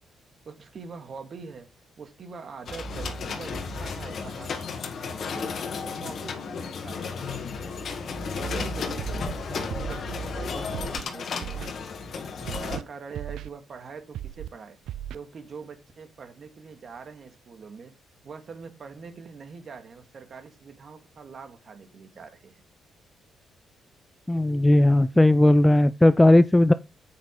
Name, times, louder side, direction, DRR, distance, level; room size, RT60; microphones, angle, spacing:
voice 1, 0.5-1.7 2.0-4.7 5.2-7.3 8.3-11.6 12.4-14.8 15.1-17.9 18.2-22.6, right 5 dB, 50° right, 2.0 m, -43 dB
sound 1, 2.7-12.8, left 4 dB, 55° left, 1.7 m, -33 dB
Scratching (performance technique), 9.0-9.3 9.7-10.0 10.7-11.0 11.4-11.7 12.4-12.8 13.1-13.5 14.1-14.5 14.9-15.2, right 11 dB, 80° right, 0.4 m, -36 dB
voice 2, 24.3-26.7, left 1 dB, 10° left, 0.5 m, -17 dB
8.6 x 6.2 x 3.8 m
cardioid pair, 90°, 0 cm